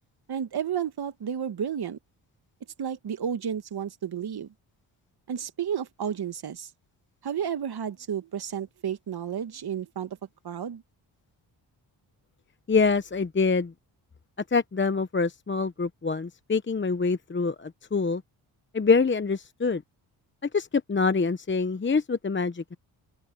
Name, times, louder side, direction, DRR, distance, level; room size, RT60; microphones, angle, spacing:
voice 1, 0.3-2.0 2.8-4.5 5.3-6.7 7.2-10.2 10.4-10.8, right 8 dB, 55° right, 1.7 m, -32 dB
voice 2, 12.7-13.7 14.5-18.2 18.7-19.8 20.5-22.8, left 4 dB, 25° left, 1.0 m, -25 dB
open air
supercardioid pair, 55°, 44 cm